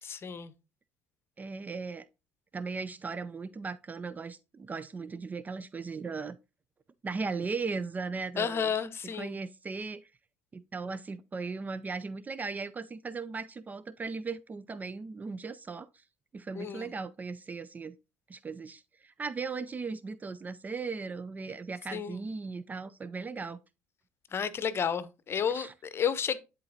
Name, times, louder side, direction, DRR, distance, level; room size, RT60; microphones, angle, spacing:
voice 1, 0.0-0.5 8.4-9.4 16.5-16.9 21.9-22.2 24.3-26.4, left 7 dB, 35° left, 0.8 m, -32 dB
voice 2, 1.4-2.1 2.5-6.4 7.0-8.7 9.2-10.1 10.5-15.9 16.3-17.9 18.3-23.6 25.5-25.7, right 4 dB, 25° right, 0.4 m, -37 dB
11.5 x 3.9 x 2.8 m
hypercardioid pair, 60°, 7 cm